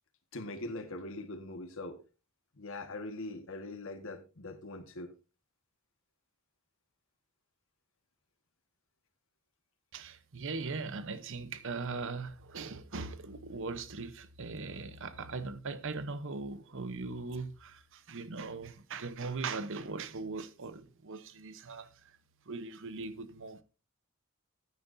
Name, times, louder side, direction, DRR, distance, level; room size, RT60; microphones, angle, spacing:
voice 1, 0.3-2.0 2.6-5.1, left 2 dB, 65° left, 1.6 m, -42 dB
voice 2, 9.9-21.9 22.5-23.6, right 4 dB, 60° right, 0.9 m, -40 dB
14.5 x 9.5 x 2.7 m
head